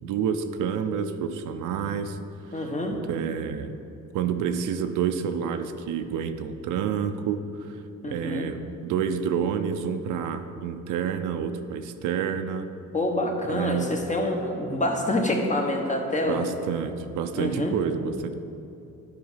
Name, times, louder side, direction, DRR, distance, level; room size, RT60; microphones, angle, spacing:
voice 1, 0.0-2.2 2.5-3.8 4.1-7.7 8.1-12.7 13.5-14.0 16.2-18.3, right 7 dB, 85° right, 8 dB, 0.6 m, -29 dB
voice 2, 2.5-3.0 8.0-8.5 12.9-16.5 17.4-17.7, left 1 dB, 25° left, 2 dB, 1.3 m, -26 dB
10.5 x 4.8 x 5.6 m, 2.8 s
cardioid pair, 90°, 30 cm